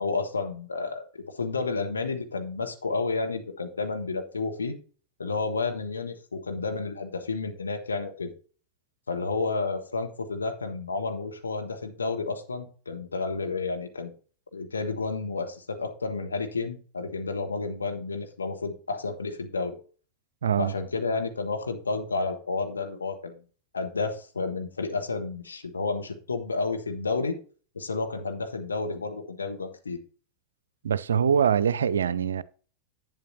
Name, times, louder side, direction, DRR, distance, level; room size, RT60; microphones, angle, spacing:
voice 1, 0.0-4.7 5.2-8.3 9.1-14.1 14.5-19.8 20.6-23.3 23.7-27.4 27.7-30.0, left 3 dB, 75° left, 1.5 m, -31 dB
voice 2, 20.4-20.7 30.8-32.4, right 8 dB, 65° right, 0.4 m, -23 dB
11.0 x 9.0 x 2.8 m
figure-of-eight pair, 90°, 0 cm